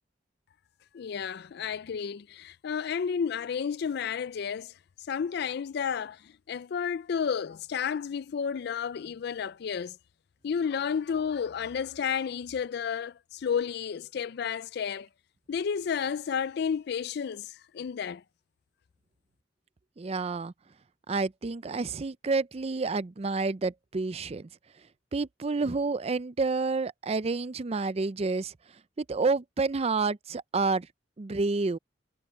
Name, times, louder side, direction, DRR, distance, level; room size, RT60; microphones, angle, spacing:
voice 1, 0.9-4.7 5.1-10.0 10.4-15.1 15.5-18.2, left 7 dB, 60° left, 0.4 m, -31 dB
voice 2, 20.0-20.5 21.1-24.5 25.1-28.5 29.0-30.9 31.2-31.8, right 3 dB, 35° right, 0.5 m, -29 dB
head